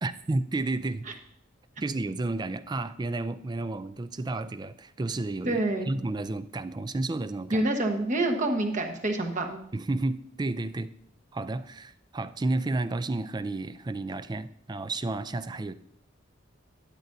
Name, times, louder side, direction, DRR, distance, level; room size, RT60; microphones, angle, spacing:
voice 1, 0.0-1.1 1.8-5.6 5.9-7.7 9.7-10.9 11.3-15.7, right 2 dB, 20° right, 13 dB, 0.4 m, -31 dB
voice 2, 5.4-5.9 7.5-9.6, right 2 dB, 40° right, 3 dB, 1.2 m, -27 dB
12.0 x 10.5 x 2.7 m, 0.71 s
head